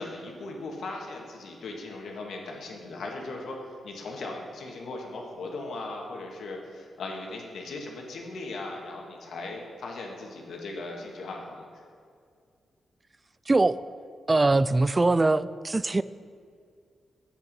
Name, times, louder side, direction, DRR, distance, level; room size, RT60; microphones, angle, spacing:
voice 1, 0.0-11.7, left 2 dB, 80° left, 0 dB, 1.6 m, -38 dB
voice 2, 13.5-13.8 14.3-16.0, right 2 dB, 25° right, 16 dB, 0.3 m, -22 dB
8.9 x 8.0 x 5.4 m, 2.2 s
cardioid pair, 70°, 0 cm